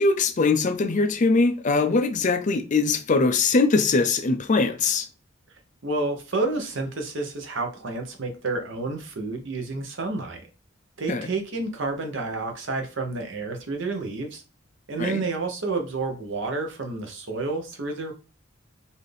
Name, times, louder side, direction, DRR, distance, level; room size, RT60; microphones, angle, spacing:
voice 1, 0.0-5.1 11.1-11.3 15.0-15.2, left 3 dB, 40° left, 0.5 m, -22 dB
voice 2, 5.8-10.4 11.0-14.4 14.9-18.1, right 3 dB, 65° right, 0.9 m, -30 dB
4.0 x 2.7 x 3.3 m
head